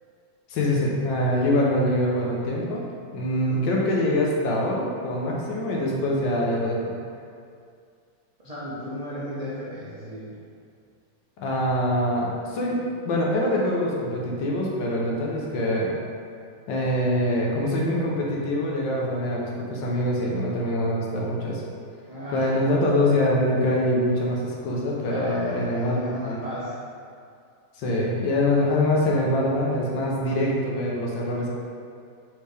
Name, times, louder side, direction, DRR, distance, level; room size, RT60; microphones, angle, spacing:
voice 1, 0.5-2.8 3.1-6.9 11.4-12.8 13.0-15.9 16.7-21.6 22.3-26.4 27.8-31.5, left 1 dB, 85° left, -3 dB, 1.5 m, -24 dB
voice 2, 3.3-3.6 8.4-10.4 22.1-22.6 25.0-26.8, equal, 70° right, -10 dB, 0.3 m, -35 dB
4.4 x 3.4 x 3.3 m, 2.3 s
omnidirectional pair, 2.0 m